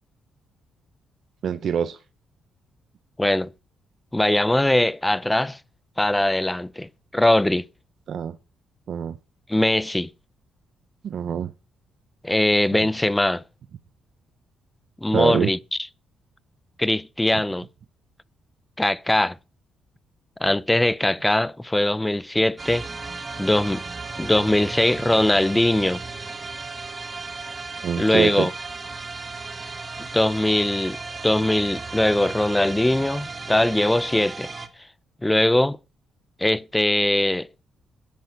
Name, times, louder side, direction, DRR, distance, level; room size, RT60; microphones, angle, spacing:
voice 1, 1.4-2.0 8.1-8.4 8.9-9.2 11.0-11.5 15.1-15.5 27.8-28.5, right 8 dB, 60° right, 0.7 m, -24 dB
voice 2, 3.2-3.5 4.1-5.6 6.0-7.6 9.5-10.1 12.2-13.4 15.0-15.8 16.8-17.7 18.8-19.4 20.4-22.9 23.4-23.8 24.2-26.0 28.0-28.5 30.1-31.0 31.2-34.5 35.2-35.8 36.4-37.5, left 1 dB, 10° left, 0.6 m, -21 dB
sound 1, 22.6-34.7, right 4 dB, 30° right, 1.6 m, -35 dB
10.5 x 10.5 x 5.7 m
cardioid pair, 90°, 0 cm